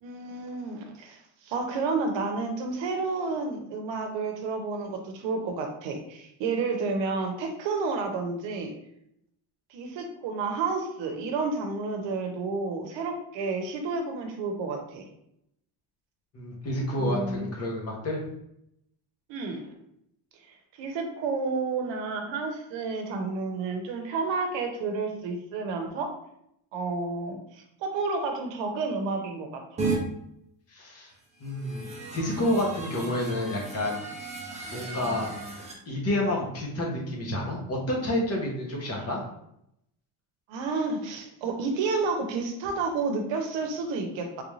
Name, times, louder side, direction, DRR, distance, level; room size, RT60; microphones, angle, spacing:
voice 1, 0.0-8.7 9.7-15.1 16.9-17.5 19.3-19.7 20.8-26.1 26.7-29.9 40.5-44.4, right 4 dB, 70° right, 4 dB, 0.8 m, -30 dB
voice 2, 16.3-18.2 30.7-31.1 31.4-34.0 34.7-35.3 35.9-39.2, left 1 dB, 35° left, -2 dB, 0.8 m, -29 dB
sound 1, 29.8-30.0 31.4-35.7, right 3 dB, 15° right, 0.3 m, -35 dB
3.3 x 2.5 x 3.1 m, 0.77 s
cardioid pair, 170°, 45 cm